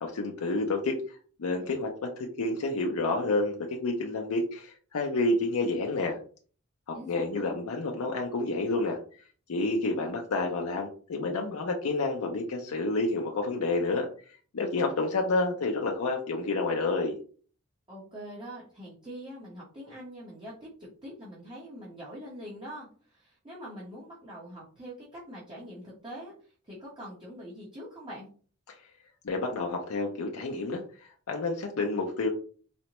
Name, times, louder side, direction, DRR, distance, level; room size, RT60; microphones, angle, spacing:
voice 1, 0.0-6.2 6.9-9.0 9.5-14.1 14.5-17.2 29.2-32.3, left 2 dB, 65° left, 2 dB, 0.5 m, -29 dB
voice 2, 6.9-7.6 17.9-28.3, equal, 20° right, -7 dB, 0.9 m, -44 dB
4.1 x 2.1 x 2.9 m, 0.42 s
head